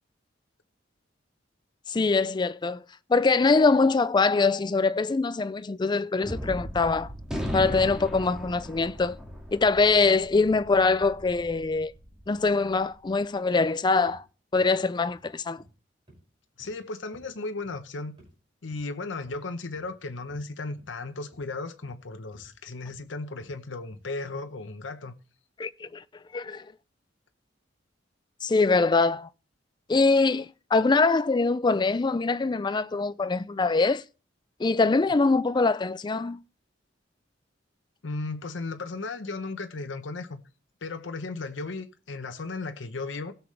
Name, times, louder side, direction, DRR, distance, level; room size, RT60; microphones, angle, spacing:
voice 1, 1.9-2.8 3.1-7.1 7.5-9.2 9.5-11.9 12.3-14.2 14.5-15.6 25.6-26.0 26.3-26.7 28.4-29.3 29.9-34.0 34.6-36.4, left 3 dB, 25° left, 0.4 m, -23 dB
Gunshot gunfire, 6.2-12.8, equal, 5° right, 1.9 m, -37 dB
sound 1, 13.5-13.7 14.1-14.2 14.6-14.8 15.1-15.3 15.6-15.7 16.1-16.2 16.6-16.8 17.1-17.3 17.6-17.8 18.2-18.3 18.7-18.9 19.2-19.4 19.8-20.0 20.3-20.4 20.8-20.9 21.3-21.5 21.8-22.0 22.3-22.5 22.9-23.0 23.4-23.6 23.9-24.1, equal, 30° right, 5.9 m, -55 dB
voice 2, 16.6-18.2 18.6-25.1 38.0-40.4 40.8-43.3, left 3 dB, 90° left, 0.8 m, -35 dB
16.5 x 7.0 x 3.2 m
head